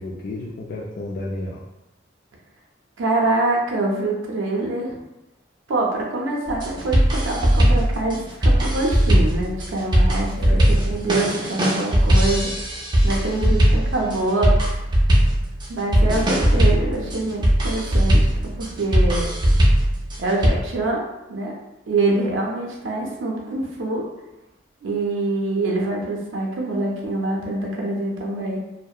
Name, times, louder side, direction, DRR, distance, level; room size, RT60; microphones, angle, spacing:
voice 1, 0.0-1.6 10.4-11.0, left 1 dB, 60° left, -5 dB, 0.3 m, -32 dB
voice 2, 3.0-5.0 5.7-10.3 10.7-12.7 13.0-14.8 15.7-19.3 20.2-21.0 21.3-21.5 21.9-24.1 24.8-28.6, right 2 dB, 80° right, -2 dB, 0.4 m, -25 dB
sound 1, 6.5-20.5, equal, 25° right, 0.4 m, -19 dB
2.6 x 2.0 x 2.3 m, 0.94 s
head